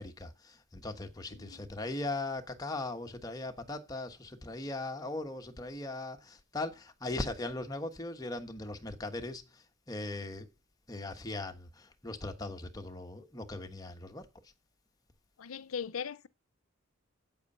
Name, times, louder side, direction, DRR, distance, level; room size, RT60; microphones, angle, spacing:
voice 1, 0.0-10.5 10.9-14.3, left 2 dB, 15° left, 1.2 m, -39 dB
voice 2, 1.3-1.7 15.4-16.3, left 7 dB, 85° left, 0.6 m, -39 dB
8.3 x 8.3 x 5.4 m
head